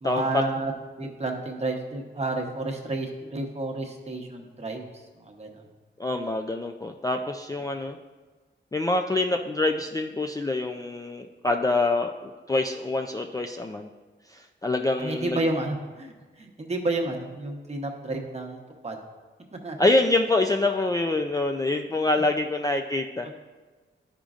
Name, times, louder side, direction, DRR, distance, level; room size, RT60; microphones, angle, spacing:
voice 1, 0.0-5.7 15.0-19.0 19.6-19.8 23.2-23.3, right 2 dB, 35° right, 2 dB, 1.0 m, -31 dB
voice 2, 6.0-8.0 8.7-13.9 14.3-15.4 19.8-23.3, left 2 dB, 20° left, 3 dB, 0.3 m, -26 dB
11.5 x 5.1 x 2.4 m, 1.3 s
wide cardioid pair, 120°, 20 cm